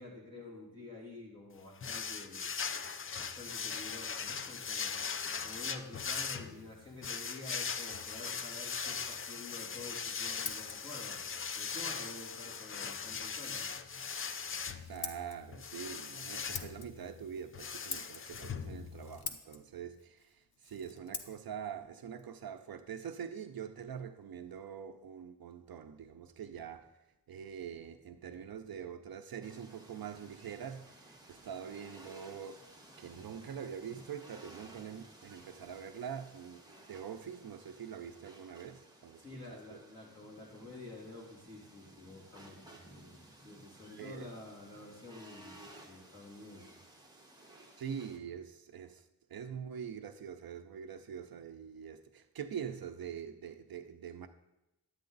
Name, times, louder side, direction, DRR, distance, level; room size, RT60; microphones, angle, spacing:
voice 1, 0.0-2.5 3.2-5.0 5.4-11.2 11.6-13.7 18.7-18.9 39.2-43.1 43.4-46.7, left 2 dB, 15° left, 2.9 m, -49 dB
sound 1, 1.8-19.2, left 6 dB, 35° left, 0.4 m, -40 dB
Scissors, 9.8-23.4, left 6 dB, 75° left, 0.9 m, -49 dB
voice 2, 14.9-26.9 27.3-32.7 33.0-36.6 36.9-39.8 44.0-44.3 47.8-49.0 49.3-54.3, right 8 dB, 70° right, 0.6 m, -44 dB
sound 2, 29.4-48.2, right 1 dB, 10° right, 1.5 m, -57 dB
10.5 x 8.5 x 3.9 m
wide cardioid pair, 140°, 37 cm